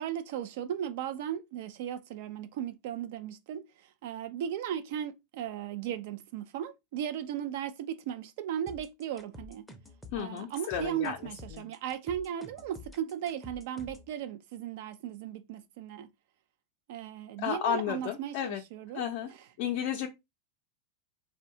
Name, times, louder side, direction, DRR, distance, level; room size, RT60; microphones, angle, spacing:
voice 1, 0.0-3.6 4.0-9.6 10.2-16.1 16.9-19.1, right 10 dB, 70° right, 0.3 m, -36 dB
sound 1, 8.7-14.1, left 2 dB, 5° left, 0.5 m, -49 dB
voice 2, 10.1-11.6 17.4-18.6 18.9-19.3 19.6-20.1, left 9 dB, 60° left, 0.4 m, -33 dB
2.6 x 2.1 x 2.6 m
supercardioid pair, 120°, 0 cm